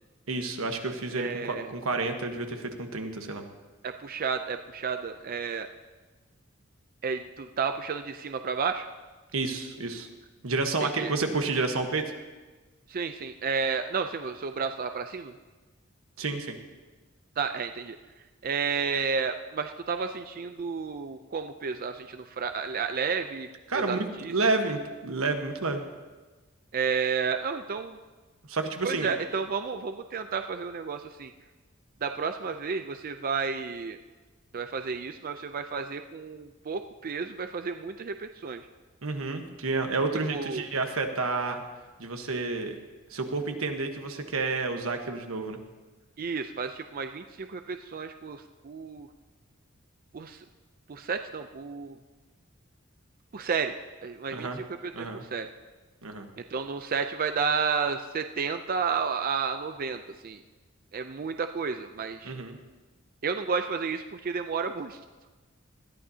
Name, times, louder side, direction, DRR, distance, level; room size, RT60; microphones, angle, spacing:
voice 1, 0.3-3.4 9.3-10.1 10.4-12.1 16.2-16.6 23.7-25.9 28.5-29.1 39.0-41.6 42.0-42.8 43.1-45.6 54.3-54.6 54.9-55.2 56.0-56.3 62.2-62.6, right 3 dB, 90° right, 5 dB, 1.2 m, -30 dB
voice 2, 1.2-1.7 3.8-5.7 7.0-8.9 10.8-11.1 12.9-15.3 17.4-18.0 18.4-23.5 23.7-24.3 26.7-28.0 28.8-31.3 32.0-34.0 34.5-38.6 40.3-40.7 46.2-49.1 50.1-50.4 50.9-52.0 53.3-53.7 54.0-55.5 56.4-60.4 60.9-62.4 63.2-65.0, right 5 dB, 45° right, 8 dB, 0.5 m, -31 dB
20.0 x 13.5 x 2.8 m, 1.3 s
head